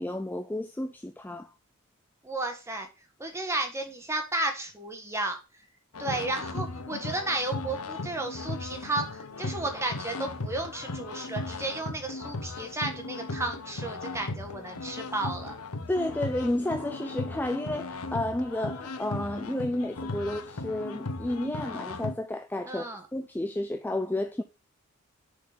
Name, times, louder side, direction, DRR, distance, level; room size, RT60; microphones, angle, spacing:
voice 1, 0.0-1.5 15.9-24.4, left 1 dB, 10° left, 0.3 m, -31 dB
voice 2, 2.2-2.9 3.2-5.4 6.0-15.5 22.7-23.0, right 2 dB, 10° right, 1.4 m, -33 dB
sound 1, 5.9-22.1, left 2 dB, 85° left, 0.9 m, -37 dB
7.1 x 4.3 x 5.7 m
head